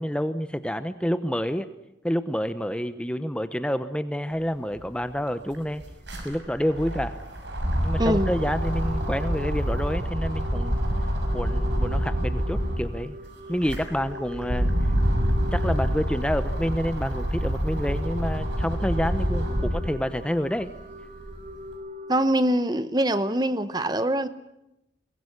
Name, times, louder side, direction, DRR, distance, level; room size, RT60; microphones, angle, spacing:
voice 1, 0.0-1.7 2.0-5.8 6.2-7.2 7.8-10.8 11.3-13.2 13.5-14.7 15.5-20.7, equal, 5° left, 11 dB, 0.8 m, -28 dB
sound 1, 4.8-4.9 5.1-12.9 13.4-19.9 20.4-21.6, equal, 75° right, 6.3 m, -27 dB
voice 2, 8.0-8.4 22.1-24.3, right 1 dB, 20° right, 13 dB, 0.9 m, -23 dB
sound 2, 8.0-22.2, left 2 dB, 45° right, 2.0 m, -41 dB
23.0 x 20.0 x 9.8 m, 0.89 s
head